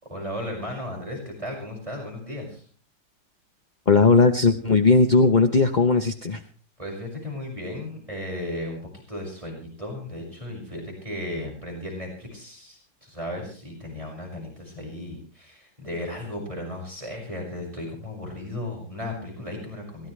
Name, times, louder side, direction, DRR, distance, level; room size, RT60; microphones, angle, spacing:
voice 1, 0.0-2.6 6.8-8.8 9.1-20.1, left 1 dB, 15° right, -1 dB, 6.3 m, -35 dB
voice 2, 3.9-6.4, left 3 dB, 40° left, 7 dB, 0.7 m, -18 dB
22.5 x 18.5 x 3.3 m, 0.42 s
omnidirectional pair, 2.0 m